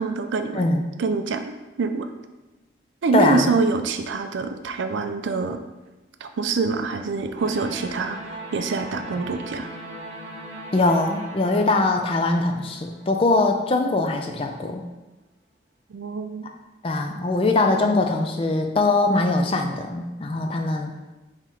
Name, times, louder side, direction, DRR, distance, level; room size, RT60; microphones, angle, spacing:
voice 1, 0.0-0.6 1.0-1.4 1.8-2.1 3.0-5.6 6.2-8.2 8.5-9.7 15.9-16.5, right 4 dB, 80° right, 8 dB, 0.4 m, -25 dB
voice 2, 0.5-0.9 3.1-3.5 10.7-14.8 16.8-20.9, left 2 dB, 30° left, 3 dB, 0.4 m, -22 dB
sound 1, 7.4-13.4, right 1 dB, 35° right, 0.7 m, -39 dB
3.8 x 3.0 x 4.3 m, 1.1 s
head